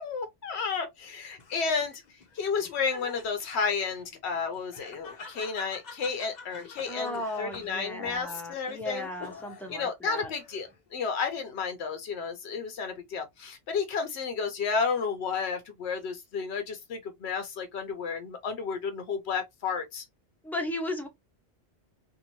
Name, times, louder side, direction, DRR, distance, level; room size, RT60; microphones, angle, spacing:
voice 1, 0.0-9.1 9.7-20.1, left 5 dB, 80° left, 0.9 m, -32 dB
Laughter, 1.4-9.8 10.2-10.9, left 5 dB, 50° left, 0.6 m, -47 dB
voice 2, 6.9-10.3 20.4-21.1, left 1 dB, ahead, 0.6 m, -35 dB
2.7 x 2.5 x 2.8 m
omnidirectional pair, 1.1 m